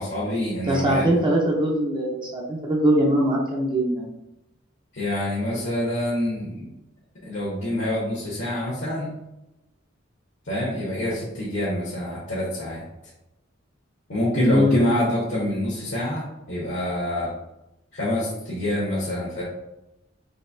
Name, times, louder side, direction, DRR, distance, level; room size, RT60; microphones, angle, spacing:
voice 1, 0.0-1.1 4.9-6.7 7.2-9.1 10.5-12.8 14.1-17.3 17.9-19.4, left 1 dB, 65° left, -6 dB, 1.0 m, -26 dB
voice 2, 0.7-4.1 14.3-15.0, equal, 25° right, -2 dB, 0.5 m, -22 dB
4.0 x 2.7 x 2.6 m, 0.90 s
head